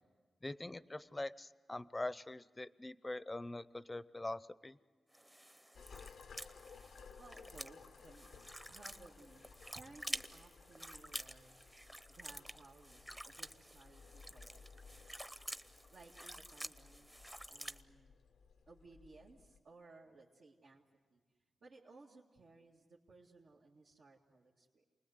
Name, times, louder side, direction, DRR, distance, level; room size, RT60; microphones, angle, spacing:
voice 1, 0.4-4.8, left 2 dB, 25° left, 17 dB, 0.7 m, -43 dB
sound 1, 5.1-17.8, equal, 10° right, 0.9 m, -50 dB
sound 2, 5.7-19.6, left 5 dB, 85° left, 0.8 m, -59 dB
voice 2, 7.2-11.7 12.1-15.1 15.9-18.2 18.7-20.8 21.1-21.2 21.6-24.8, right 3 dB, 75° right, -5 dB, 2.2 m, -61 dB
28.5 x 20.0 x 8.0 m, 1.4 s
cardioid pair, 60°, 0 cm